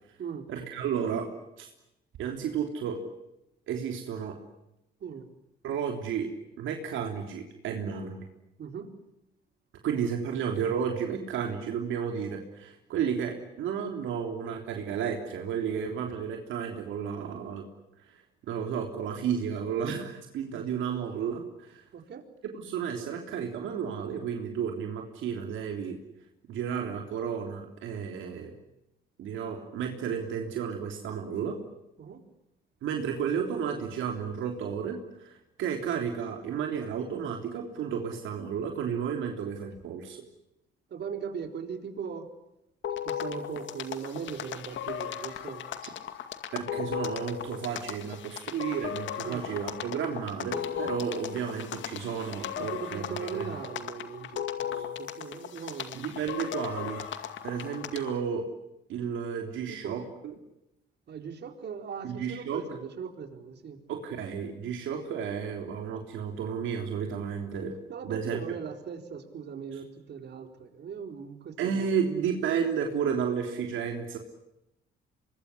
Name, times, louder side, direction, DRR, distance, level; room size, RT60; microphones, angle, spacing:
voice 1, 0.5-1.3 1.6-1.7 2.2-3.0 3.7-4.4 5.6-6.3 6.6-8.3 9.8-17.6 18.4-21.8 22.5-26.0 26.5-28.5 29.2-31.6 32.8-40.2 46.5-53.5 54.7-54.8 55.9-57.2 57.4-58.4 58.9-60.3 62.0-62.6 63.9-67.7 68.0-68.4 71.6-74.2, right 7 dB, 80° right, 3 dB, 3.5 m, -32 dB
voice 2, 8.6-8.9 20.5-20.8 21.9-22.2 32.0-32.2 40.9-42.3 43.0-45.7 49.2-49.5 52.6-56.1 59.7-60.0 61.1-63.8 67.9-71.9, right 6 dB, 60° right, 6 dB, 4.3 m, -39 dB
sound 1, 42.8-58.2, left 10 dB, 70° left, 2.3 m, -37 dB
25.0 x 22.0 x 9.9 m, 0.87 s
cardioid pair, 85°, 20 cm